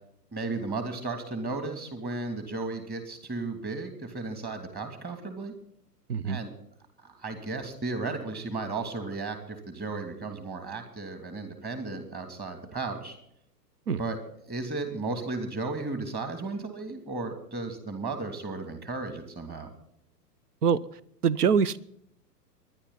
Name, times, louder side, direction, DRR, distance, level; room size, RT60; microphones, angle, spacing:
voice 1, 0.3-5.5 6.2-6.5 7.0-13.2 14.0-14.2 14.5-19.7, right 3 dB, 20° right, 7 dB, 2.8 m, -34 dB
voice 2, 21.2-21.8, right 6 dB, 70° right, 21 dB, 0.8 m, -23 dB
23.0 x 11.0 x 4.1 m, 0.73 s
figure-of-eight pair, 110°, 49 cm